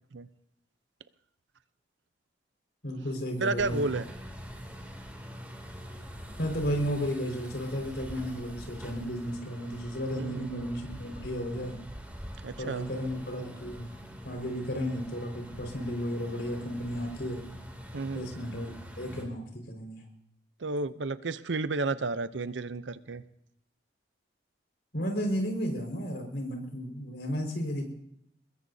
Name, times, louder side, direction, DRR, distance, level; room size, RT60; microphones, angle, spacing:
voice 1, 2.8-3.8 6.4-11.8 12.6-13.9 14.2-17.4 18.1-18.7 19.0-20.0 24.9-27.9, equal, 65° left, 2 dB, 5.0 m, -33 dB
voice 2, 3.4-4.1 10.1-10.6 12.4-12.9 17.9-18.3 20.6-23.2, right 3 dB, 85° right, 14 dB, 0.7 m, -32 dB
sound 1, 3.6-19.2, equal, 10° right, 2.7 m, -44 dB
22.5 x 21.0 x 2.8 m, 0.75 s
head